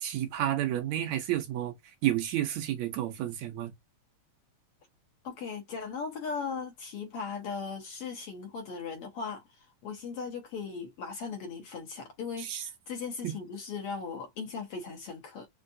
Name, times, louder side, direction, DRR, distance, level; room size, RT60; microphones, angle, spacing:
voice 1, 0.0-1.7 2.0-3.7 12.4-12.6 13.2-13.3, right 12 dB, 75° right, 2.2 m, -30 dB
voice 2, 5.2-15.5, left 5 dB, 65° left, 1.7 m, -38 dB
5.4 x 2.5 x 2.6 m
omnidirectional pair, 3.3 m